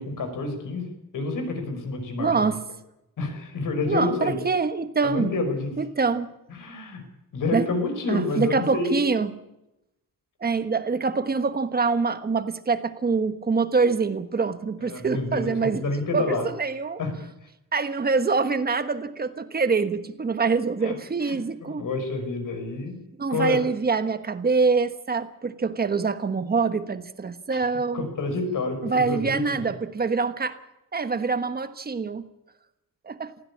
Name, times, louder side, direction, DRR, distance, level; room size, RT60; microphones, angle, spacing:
voice 1, 0.0-2.5 3.2-4.4 5.0-5.7 6.5-7.0 7.3-9.1 14.8-16.5 17.0-17.1 20.8-21.0 21.2-23.0 23.3-23.6 27.5-27.6 27.9-29.6, left 3 dB, 65° left, 7 dB, 5.4 m, -29 dB
voice 2, 2.2-2.6 3.9-5.3 5.8-6.3 7.5-7.7 8.1-9.3 10.4-15.8 16.1-17.0 17.7-21.9 23.2-28.1 28.8-30.6 30.9-32.3 33.0-33.3, right 4 dB, 25° right, 10 dB, 1.3 m, -25 dB
20.5 x 16.0 x 8.6 m, 0.89 s
wide cardioid pair, 165°, 34 cm